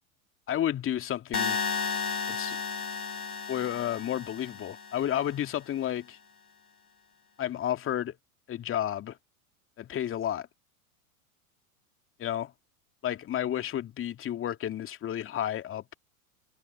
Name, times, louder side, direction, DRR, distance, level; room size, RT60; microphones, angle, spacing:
voice 1, 0.5-1.6 2.3-2.6 3.5-6.2 7.4-8.2 8.5-9.2 9.8-10.5 12.2-12.5 13.0-15.9, left 11 dB, 30° left, 2.6 m, -31 dB
sound 1, 1.3-5.4, left 5 dB, 85° left, 7.3 m, -33 dB
figure-of-eight pair, 90°, 43 cm